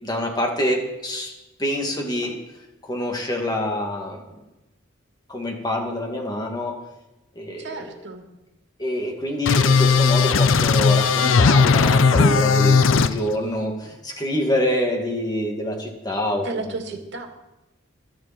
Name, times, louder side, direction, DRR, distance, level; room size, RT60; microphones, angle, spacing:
voice 1, 0.0-1.3 1.6-2.4 2.8-4.2 5.3-6.8 7.3-7.9 8.8-16.7, left 1 dB, 20° left, 1 dB, 2.4 m, -26 dB
voice 2, 7.6-8.3 16.4-17.3, right 2 dB, 60° right, 4 dB, 2.2 m, -33 dB
sound 1, 9.5-13.1, left 5 dB, 80° left, 0.6 m, -17 dB
24.5 x 10.0 x 4.5 m, 1.0 s
head